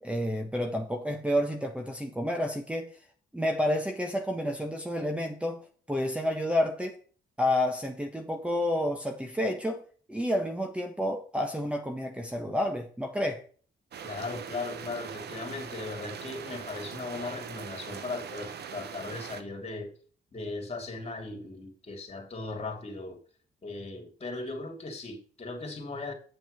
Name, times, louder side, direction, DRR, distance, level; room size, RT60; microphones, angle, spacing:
voice 1, 0.0-2.9 3.3-7.0 7.4-9.8 10.1-13.4, left 1 dB, 5° right, 1.3 m, -30 dB
sound 1, 13.9-19.4, right 7 dB, 65° right, 1.1 m, -41 dB
voice 2, 14.0-19.9 20.3-23.2 23.6-26.1, left 3 dB, 35° left, 3.0 m, -38 dB
7.9 x 7.9 x 5.4 m
cardioid pair, 80°, 18 cm